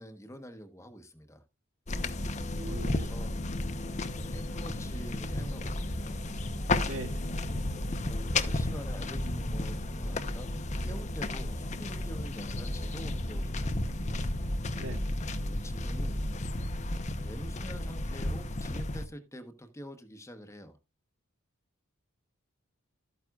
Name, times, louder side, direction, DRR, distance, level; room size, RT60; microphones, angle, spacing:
voice 1, 0.0-1.4 2.5-3.4 4.1-6.2 7.7-10.5 10.8-14.0 15.4-16.2 17.2-20.8, equal, 15° left, 1.0 m, -46 dB
sound 1, 1.9-19.0, left 1 dB, 35° left, 0.7 m, -33 dB
voice 2, 2.5-3.1 6.8-7.4 14.8-15.2, right 1 dB, 85° right, 2.0 m, -41 dB
12.5 x 9.2 x 2.4 m
head